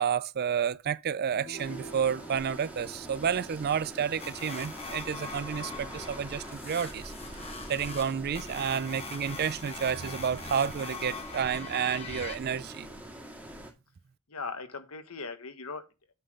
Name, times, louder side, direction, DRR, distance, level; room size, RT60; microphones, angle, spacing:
voice 1, 0.0-7.1 7.7-12.9, right 7 dB, 45° right, 0.4 m, -30 dB
sound 1, 1.3-7.8, right 2 dB, 50° left, 2.8 m, -52 dB
sound 2, 1.6-13.7, right 1 dB, 10° right, 1.7 m, -44 dB
sound 3, 4.2-12.4, left 4 dB, 25° left, 1.2 m, -42 dB
voice 2, 14.3-16.1, left 4 dB, 70° left, 1.3 m, -39 dB
8.1 x 3.8 x 6.4 m
head